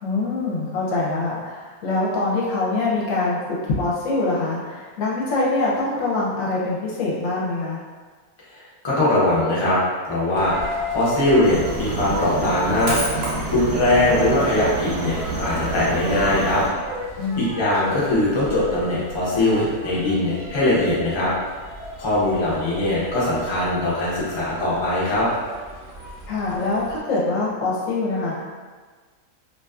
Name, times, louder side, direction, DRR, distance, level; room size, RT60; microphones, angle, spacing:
voice 1, 0.0-7.8 17.2-17.5 26.3-28.3, left 3 dB, 70° left, -5 dB, 0.9 m, -24 dB
voice 2, 8.8-9.8 10.0-10.5 10.9-13.0 13.5-16.6 17.4-21.3 22.0-25.3, left 1 dB, 45° left, -8 dB, 0.3 m, -21 dB
Coin (dropping), 10.4-27.0, right 1 dB, 60° right, 0.7 m, -35 dB
sound 1, 11.4-16.7, right 3 dB, 80° right, 1.1 m, -29 dB
2.4 x 2.4 x 2.3 m, 1.4 s
omnidirectional pair, 1.6 m